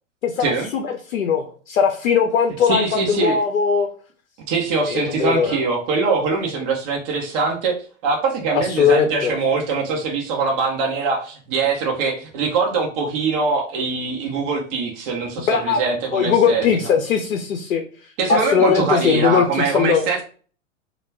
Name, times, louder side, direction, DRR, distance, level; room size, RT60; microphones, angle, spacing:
voice 1, 0.2-0.8 1.1-3.9 4.9-5.6 8.5-9.3 15.5-15.8 16.1-20.1, left 6 dB, 75° left, 4 dB, 0.6 m, -20 dB
voice 2, 2.7-3.4 4.5-7.8 8.0-16.7 18.2-20.2, right 4 dB, 45° right, 0 dB, 0.7 m, -22 dB
2.3 x 2.1 x 3.3 m, 0.41 s
hypercardioid pair, 105°, 40 cm